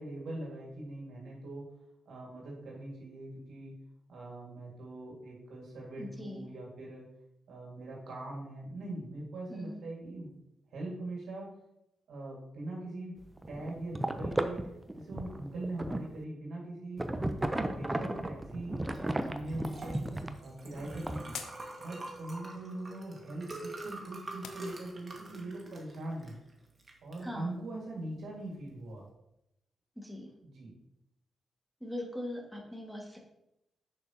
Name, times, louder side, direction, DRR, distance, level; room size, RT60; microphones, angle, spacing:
voice 1, 0.0-1.6 2.1-3.7 4.1-7.0 7.5-10.3 10.7-11.5 12.1-13.2 13.5-14.6 14.9-17.1 17.4-18.9 19.2-20.1 20.4-21.4 21.8-26.4 27.0-29.0 30.4-30.7, right 2 dB, 70° right, -3 dB, 2.0 m, -41 dB
voice 2, 6.0-6.5 9.5-9.8 27.2-27.5 30.0-30.3 31.8-33.2, left 1 dB, ahead, -1 dB, 1.9 m, -41 dB
sound 1, 13.2-16.2 17.0-20.4 20.7-21.2, right 1 dB, 20° right, 0.7 m, -35 dB
Liquid, 18.9-29.1, right 2 dB, 40° right, 1.8 m, -47 dB
sound 2, 19.8-25.3, left 7 dB, 80° left, 0.6 m, -52 dB
6.5 x 6.5 x 2.9 m, 0.85 s
hypercardioid pair, 40°, 0 cm